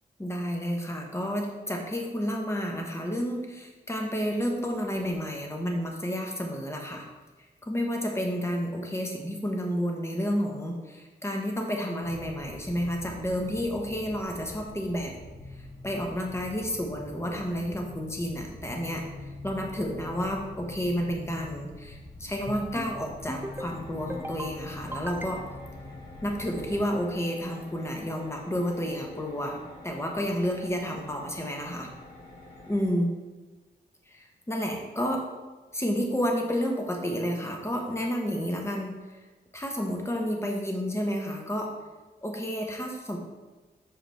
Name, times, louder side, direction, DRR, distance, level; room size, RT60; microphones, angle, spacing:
voice 1, 0.2-7.1 7.6-15.1 15.8-25.4 26.2-29.6 29.8-31.9 32.7-33.1 34.1-35.2 35.7-38.9 39.5-41.7 42.2-43.2, equal, 15° left, 1 dB, 1.0 m, -30 dB
sound 1, 12.0-26.9, left 2 dB, 45° left, 1.4 m, -44 dB
sound 2, 22.5-22.9 23.3-23.7 24.1-24.5 24.9-25.7, right 1 dB, 10° right, 0.4 m, -38 dB
sound 3, 23.2-32.9, left 2 dB, 80° left, 1.5 m, -48 dB
6.2 x 4.8 x 3.4 m, 1.2 s
wide cardioid pair, 105°, 17 cm